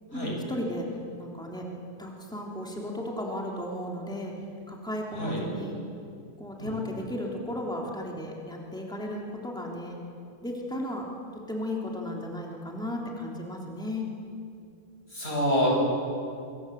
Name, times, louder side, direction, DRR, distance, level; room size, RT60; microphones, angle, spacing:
voice 1, 0.1-0.9 1.2-1.7 2.0-4.3 4.7-5.8 6.4-10.0 10.4-11.1 11.3-14.1, left 1 dB, 5° left, -1 dB, 3.3 m, -35 dB
voice 2, 15.1-15.7, equal, 70° left, -3 dB, 8.5 m, -27 dB
25.5 x 24.5 x 8.1 m, 2.5 s
omnidirectional pair, 1.1 m